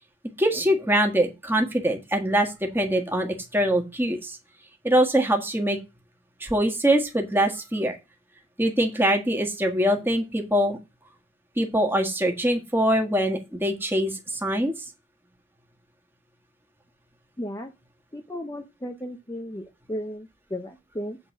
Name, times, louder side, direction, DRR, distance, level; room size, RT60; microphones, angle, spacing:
voice 1, 0.4-4.4 4.8-5.8 6.4-8.0 8.6-10.8 11.6-14.7, right 1 dB, 10° right, 3 dB, 1.5 m, -23 dB
voice 2, 17.4-17.7 18.1-21.2, equal, 15° left, 4 dB, 0.6 m, -35 dB
8.2 x 3.9 x 7.0 m, 0.25 s
head